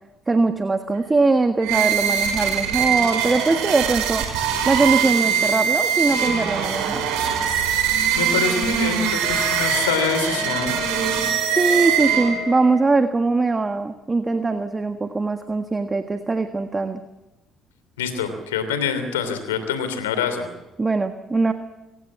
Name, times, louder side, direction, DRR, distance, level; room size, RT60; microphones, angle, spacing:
voice 1, 0.3-4.2 4.7-7.0 11.5-17.0 20.8-21.5, right 3 dB, 25° right, 7 dB, 1.6 m, -21 dB
sound 1, 1.6-12.6, right 8 dB, 75° right, 4.7 m, -22 dB
voice 2, 8.2-10.8 18.0-20.5, left 6 dB, 90° left, 9 dB, 3.0 m, -25 dB
sound 2, 9.2-12.9, left 9 dB, 70° left, 1.6 m, -33 dB
25.0 x 17.0 x 7.5 m, 1.0 s
hypercardioid pair, 55°, 0 cm